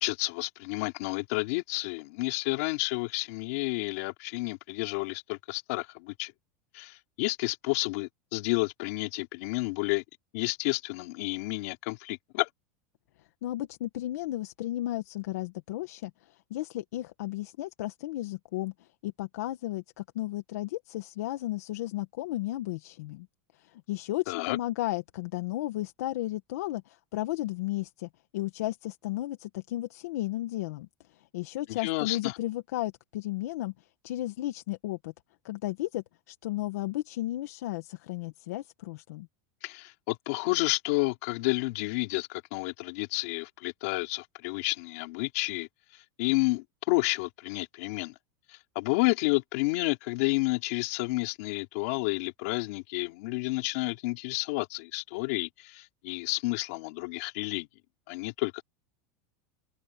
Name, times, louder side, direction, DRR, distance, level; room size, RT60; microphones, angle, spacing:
voice 1, 0.0-6.3 6.7-10.0 10.3-12.5 24.3-24.6 31.7-32.4 39.6-45.7 46.2-48.1 48.5-57.7 58.1-58.6, left 24 dB, 55° left, 3.1 m, -30 dB
voice 2, 13.4-23.3 23.6-30.9 31.3-33.7 34.0-35.1 35.4-39.3, left 16 dB, 75° left, 1.6 m, -34 dB
open air
supercardioid pair, 170°, 9 cm